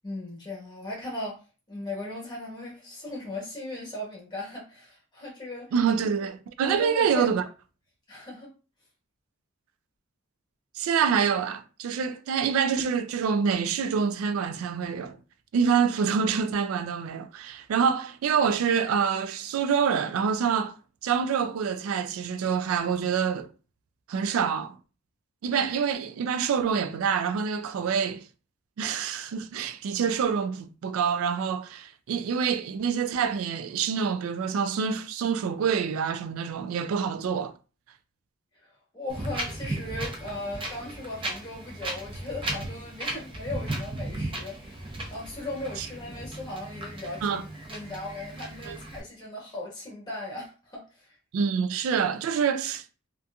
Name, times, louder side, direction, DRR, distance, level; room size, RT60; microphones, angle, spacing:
voice 1, 0.0-1.4 1.7-5.7 6.6-7.3 8.1-8.5 38.6-51.1, left 2 dB, 20° left, 1.0 m, -38 dB
voice 2, 5.7-7.4 10.8-15.2 15.5-20.7 21.0-23.5 24.1-24.8 25.4-28.3 28.8-37.5 45.8-45.9 47.2-47.4 48.7-48.8 51.3-52.8, right 6 dB, 80° right, 0.3 m, -26 dB
Wind, 39.1-49.0, right 1 dB, 25° right, 0.5 m, -36 dB
2.7 x 2.4 x 2.2 m
head